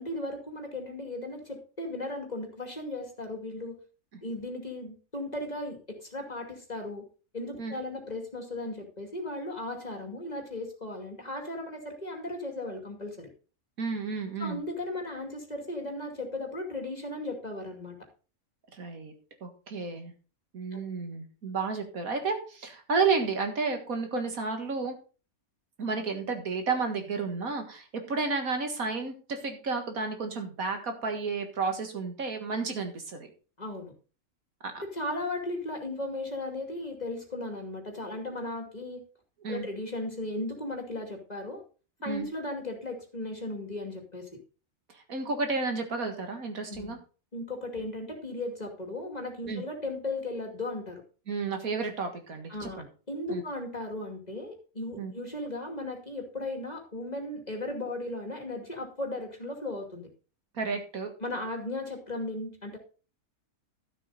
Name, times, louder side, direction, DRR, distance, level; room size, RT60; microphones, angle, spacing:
voice 1, 0.0-3.8 4.2-7.0 7.3-13.3 14.4-18.0 20.7-20.8 33.6-33.9 34.8-39.0 39.5-41.6 42.0-44.4 46.7-47.0 47.3-51.0 52.5-60.1 61.2-62.8, left 2 dB, 30° left, 3 dB, 2.7 m, -36 dB
voice 2, 13.8-14.6 18.7-19.1 19.4-20.1 20.5-25.0 25.8-33.3 34.6-34.8 39.4-39.7 42.1-42.3 44.9-47.0 49.5-49.6 51.3-52.9 53.3-53.4 55.0-55.1 60.5-61.1, right 4 dB, 70° right, 5 dB, 2.2 m, -32 dB
12.5 x 7.6 x 4.1 m, 0.36 s
omnidirectional pair, 1.5 m